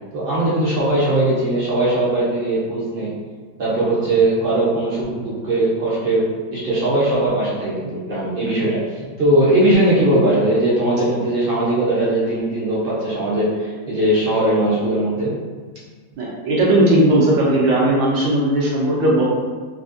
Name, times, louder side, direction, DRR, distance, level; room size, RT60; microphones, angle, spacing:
voice 1, 0.1-3.1 3.6-6.2 6.5-8.8 9.2-15.3, right 1 dB, 65° right, -8 dB, 0.5 m, -19 dB
voice 2, 16.2-19.2, right 1 dB, 85° right, -5 dB, 1.6 m, -17 dB
3.9 x 2.4 x 2.5 m, 1.5 s
omnidirectional pair, 2.0 m